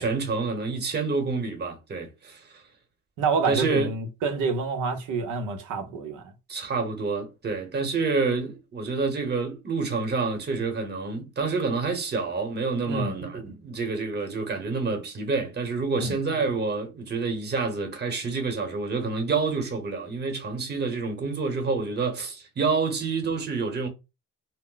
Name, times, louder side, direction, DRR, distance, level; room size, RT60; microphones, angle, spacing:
voice 1, 0.0-2.4 3.5-3.9 6.5-23.9, right 4 dB, 35° right, 1.0 m, -28 dB
voice 2, 3.2-6.3 12.9-13.1 16.0-16.2, right 4 dB, 85° right, 0.8 m, -28 dB
2.1 x 2.1 x 3.8 m
cardioid pair, 90°, 30 cm